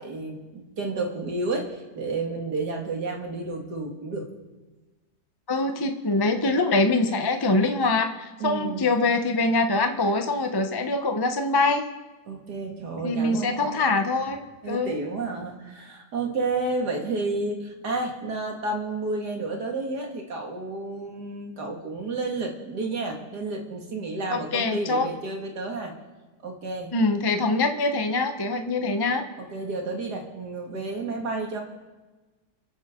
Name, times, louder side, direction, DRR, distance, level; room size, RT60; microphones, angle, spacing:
voice 1, 0.0-4.3 8.4-8.9 12.3-13.8 14.6-25.9 26.4-26.9 29.5-31.6, right 3 dB, 75° right, 1 dB, 2.6 m, -31 dB
voice 2, 5.5-11.8 13.0-14.4 14.7-15.0 24.3-25.1 26.9-29.3, left 2 dB, 20° left, 6 dB, 0.6 m, -24 dB
30.0 x 10.0 x 3.8 m, 1.2 s
omnidirectional pair, 1.8 m